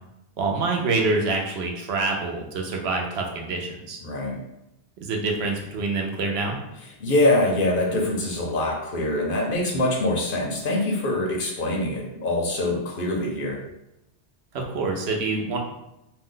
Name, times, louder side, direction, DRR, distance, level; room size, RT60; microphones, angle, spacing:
voice 1, 0.4-4.0 5.0-6.6 14.5-15.6, right 3 dB, 70° right, 1 dB, 0.8 m, -26 dB
voice 2, 4.0-4.4 7.0-13.6, left 1 dB, 60° left, -1 dB, 0.7 m, -24 dB
2.6 x 2.1 x 3.7 m, 0.87 s
omnidirectional pair, 1.2 m